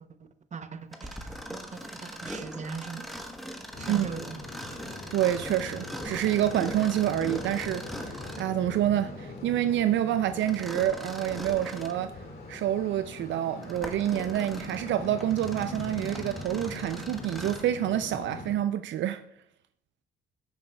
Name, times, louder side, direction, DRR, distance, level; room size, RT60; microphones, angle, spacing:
voice 1, 0.5-3.1 3.8-4.4, right 5 dB, 35° right, 0.8 m, -40 dB
Mechanisms, 0.9-8.6 10.4-12.0 12.6-12.7 13.4-17.8, equal, ahead, 1.1 m, -41 dB
sound 1, 3.7-18.5, left 2 dB, 50° left, 1.9 m, -41 dB
voice 2, 5.1-12.2 12.5-19.2, right 12 dB, 70° right, 0.4 m, -28 dB
15.5 x 6.6 x 2.3 m
cardioid pair, 90°, 20 cm